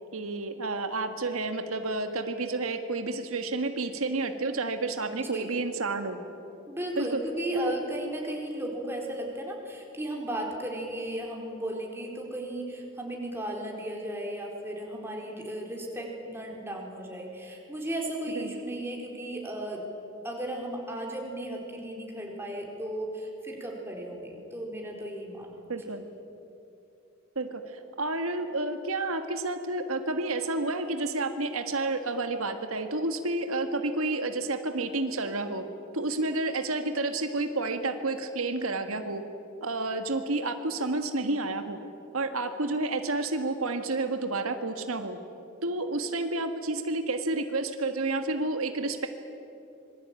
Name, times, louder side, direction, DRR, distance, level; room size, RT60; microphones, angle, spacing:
voice 1, 0.1-6.2 7.0-7.2 7.5-7.7 18.3-18.5 25.7-26.0 27.4-35.6 35.9-39.2 39.6-41.8 42.1-45.2 45.6-49.1, right 2 dB, 90° right, 7 dB, 1.7 m, -30 dB
voice 2, 5.1-5.5 6.7-19.8 20.2-25.6, right 1 dB, 10° right, -1 dB, 4.3 m, -35 dB
26.0 x 21.5 x 9.0 m, 2.7 s
head